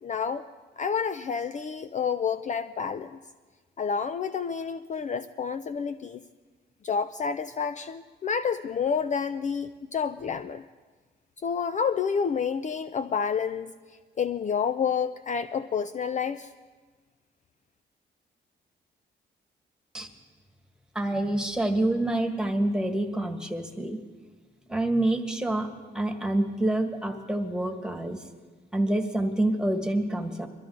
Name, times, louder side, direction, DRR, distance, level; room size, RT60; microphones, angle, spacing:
voice 1, 0.0-0.4 0.8-3.2 3.8-6.2 6.8-10.6 11.4-13.7 14.2-16.5, left 6 dB, 40° left, 11 dB, 0.5 m, -29 dB
voice 2, 20.9-24.0 24.7-25.7 25.9-28.2 28.7-30.5, right 1 dB, 5° right, 4 dB, 1.6 m, -27 dB
22.5 x 13.5 x 3.8 m, 1.4 s
cardioid pair, 85°, 19 cm